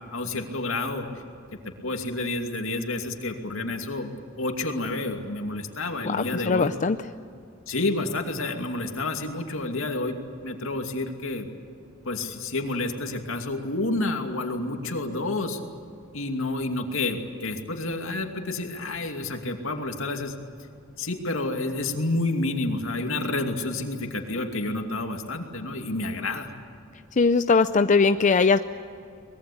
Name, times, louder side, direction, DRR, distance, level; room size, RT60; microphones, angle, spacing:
voice 1, 0.1-1.1 1.6-6.7 7.7-10.2 10.4-11.5 12.0-15.6 16.1-20.3 21.0-26.5, left 2 dB, 75° left, 4 dB, 2.6 m, -29 dB
voice 2, 6.0-7.0 27.2-28.6, left 4 dB, 35° left, 10 dB, 0.5 m, -20 dB
24.0 x 21.5 x 8.6 m, 2.4 s
head